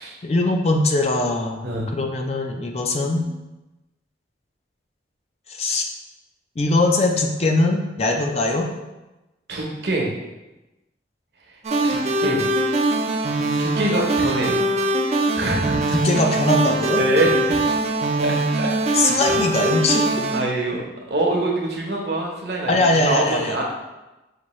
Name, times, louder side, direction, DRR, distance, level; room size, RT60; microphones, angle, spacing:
voice 1, 0.2-1.7 1.9-3.3 5.5-5.9 6.6-8.7 15.9-17.0 18.9-20.3 22.7-23.6, left 2 dB, 35° left, 2 dB, 0.4 m, -21 dB
voice 2, 9.5-10.1 11.8-12.5 13.6-14.6 15.0-16.0 17.0-17.6 18.2-19.1 20.1-20.8 21.1-23.6, right 1 dB, 60° right, -1 dB, 0.8 m, -25 dB
sound 1, 11.6-20.4, right 2 dB, 35° right, 0.4 m, -22 dB
5.8 x 2.6 x 3.0 m, 1.0 s
head